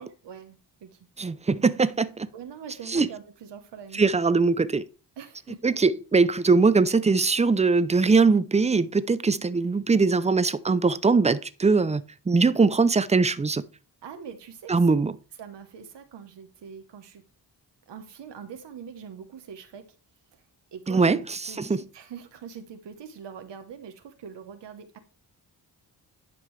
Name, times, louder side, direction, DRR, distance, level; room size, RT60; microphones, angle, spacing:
voice 1, 0.0-1.0 2.3-4.2 5.2-5.8 14.0-14.7 15.4-17.2 17.9-19.9 20.7-21.2 21.5-25.0, right 7 dB, 85° right, 1.0 m, -43 dB
voice 2, 1.2-2.3 2.9-3.1 3.9-4.9 5.6-13.6 14.7-15.1 20.9-21.8, right 4 dB, 15° right, 0.5 m, -21 dB
11.0 x 5.3 x 3.2 m
cardioid pair, 85°, 41 cm